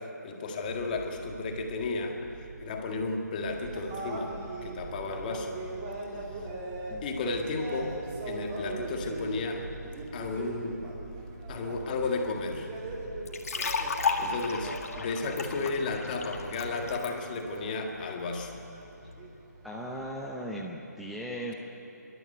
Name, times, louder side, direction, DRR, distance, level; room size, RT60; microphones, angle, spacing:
voice 1, 0.0-2.3 2.6-5.6 7.0-8.0 8.3-9.7 10.1-10.9 11.5-12.7 14.2-18.5, left 3 dB, 30° left, 2 dB, 1.9 m, -33 dB
sound 1, 0.6-17.0, right 3 dB, 75° right, 1.5 m, -46 dB
sound 2, 3.4-15.5 15.8-20.2, right 1 dB, 20° right, 2.9 m, -41 dB
voice 2, 6.1-6.6 6.9-7.0 14.2-14.5 19.6-21.5, equal, ahead, -4 dB, 0.7 m, -39 dB
sound 3, 13.3-17.1, left 4 dB, 55° left, 1.9 m, -33 dB
25.5 x 12.5 x 9.5 m, 2.9 s
figure-of-eight pair, 155°, 10 cm